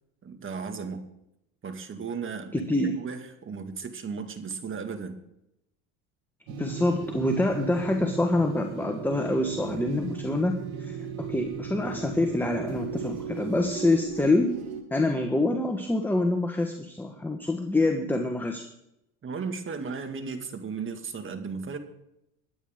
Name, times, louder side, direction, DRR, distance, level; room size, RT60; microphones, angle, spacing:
voice 1, 0.2-1.0 1.6-2.7 3.0-5.2 19.2-21.8, right 5 dB, 30° right, 7 dB, 2.0 m, -35 dB
voice 2, 2.5-3.0 6.5-14.5 14.9-18.7, left 2 dB, 5° left, 4 dB, 1.3 m, -26 dB
sound 1, 6.5-14.8, right 6 dB, 75° right, 2.2 m, -36 dB
22.0 x 9.4 x 3.7 m, 0.83 s
supercardioid pair, 95°, 39 cm